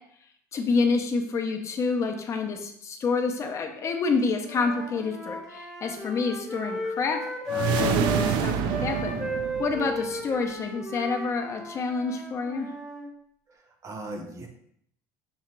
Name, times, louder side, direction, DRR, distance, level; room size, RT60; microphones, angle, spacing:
voice 1, 0.5-7.2 7.5-9.1 9.6-12.7, left 4 dB, 35° left, 4 dB, 0.6 m, -28 dB
Wind instrument woodwind instrument, 4.4-8.3 8.7-13.1, left 1 dB, 5° left, 0.9 m, -34 dB
sound 1, 7.5-10.1, right 8 dB, 60° right, 0.4 m, -27 dB
voice 2, 9.0-9.4 13.5-14.5, right 1 dB, 35° right, 4 dB, 0.8 m, -39 dB
5.6 x 2.4 x 3.0 m, 0.70 s
supercardioid pair, 120°, 9 cm